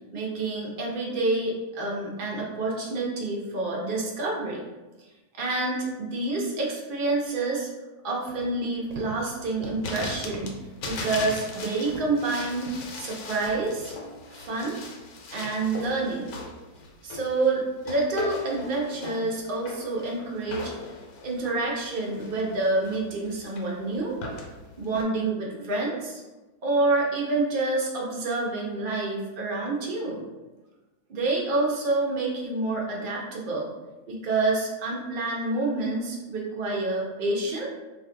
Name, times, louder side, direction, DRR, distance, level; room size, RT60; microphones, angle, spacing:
voice 1, 0.1-4.6 5.4-7.7 8.0-10.5 10.9-12.7 13.0-13.9 14.3-14.8 15.3-16.3 17.0-20.7 21.2-24.1 24.8-26.2 26.6-30.2 31.1-33.7 34.1-37.7, right 2 dB, 55° right, -2 dB, 0.6 m, -28 dB
sound 1, 8.3-13.8, right 2 dB, 75° right, 1.0 m, -44 dB
sound 2, 9.8-25.0, left 3 dB, 80° left, 1.0 m, -38 dB
2.5 x 2.3 x 3.7 m, 1.1 s
omnidirectional pair, 1.6 m